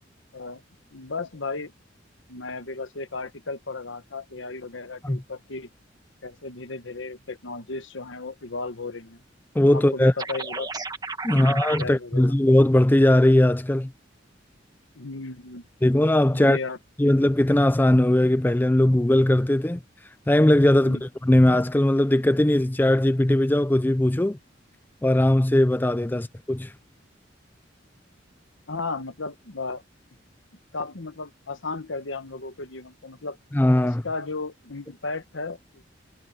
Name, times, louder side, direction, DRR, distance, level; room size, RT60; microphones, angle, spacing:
voice 1, 0.9-1.7 2.3-5.7 6.2-9.2 9.7-10.7 11.2-12.3 14.9-15.7 16.3-16.8 20.8-21.0 26.1-26.2 28.7-29.8 30.7-33.4 33.8-35.8, left 3 dB, 80° left, 1.3 m, -35 dB
voice 2, 9.6-10.1 11.2-13.9 15.8-16.6 17.0-19.8 20.3-24.4 25.0-26.7 33.5-34.0, left 1 dB, 10° left, 0.4 m, -19 dB
sound 1, 10.2-11.8, right 4 dB, 20° right, 1.3 m, -33 dB
head